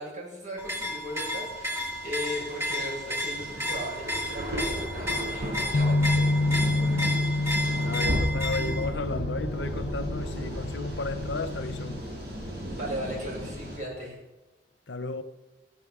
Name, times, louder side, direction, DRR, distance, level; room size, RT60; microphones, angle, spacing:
voice 1, 0.0-7.1 12.7-14.2, equal, 45° right, 6.5 m, -38 dB
sound 1, 0.6-8.9, left 1 dB, 15° right, 3.0 m, -32 dB
sound 2, 1.1-13.8, equal, 60° right, 7.5 m, -35 dB
Bass guitar, 5.7-12.0, left 2 dB, 45° left, 0.4 m, -28 dB
voice 2, 7.7-12.1 14.9-15.2, left 3 dB, 75° left, 0.8 m, -34 dB
16.0 x 10.0 x 7.5 m
head